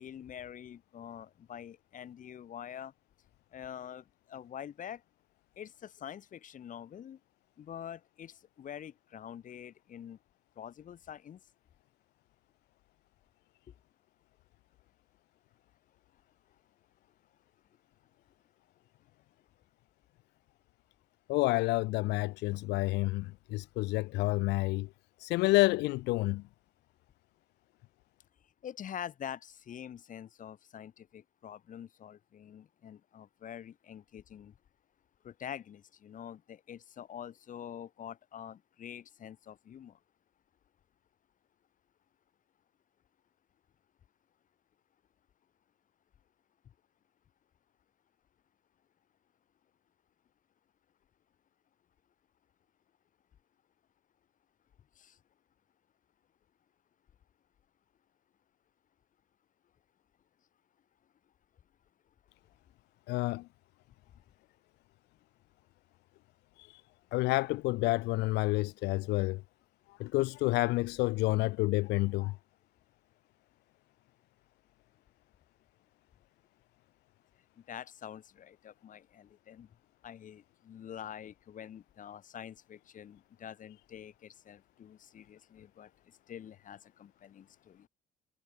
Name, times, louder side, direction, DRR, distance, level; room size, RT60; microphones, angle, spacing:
voice 1, 0.0-2.9 3.5-5.0 5.6-7.2 7.6-10.2 10.6-11.4 28.6-34.5 35.2-40.0 55.0-55.2 77.7-79.7 80.0-85.9 86.3-87.9, left 9 dB, 50° left, 4.1 m, -46 dB
voice 2, 21.3-24.9 25.2-26.4 63.1-63.5 66.6-66.8 67.1-69.4 69.9-72.4, left 20 dB, 85° left, 0.7 m, -29 dB
cardioid pair, 110°, 17 cm